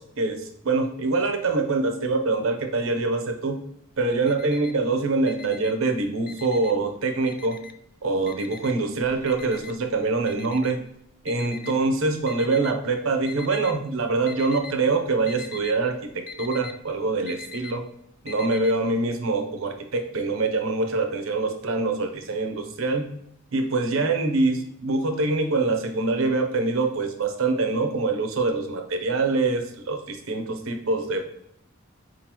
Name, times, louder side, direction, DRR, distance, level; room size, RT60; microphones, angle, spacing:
voice 1, 0.0-3.6 4.0-7.6 8.0-10.8 11.2-15.9 16.4-17.8 18.2-23.1 23.5-31.3, right 3 dB, 90° right, 5 dB, 0.7 m, -24 dB
Alarm, 3.9-4.9 5.2-6.9 7.3-7.9 8.3-12.7 13.3-13.9 14.1-14.8 15.0-18.7, left 6 dB, 45° left, 0.4 m, -42 dB
4.4 x 3.9 x 2.9 m, 0.75 s
head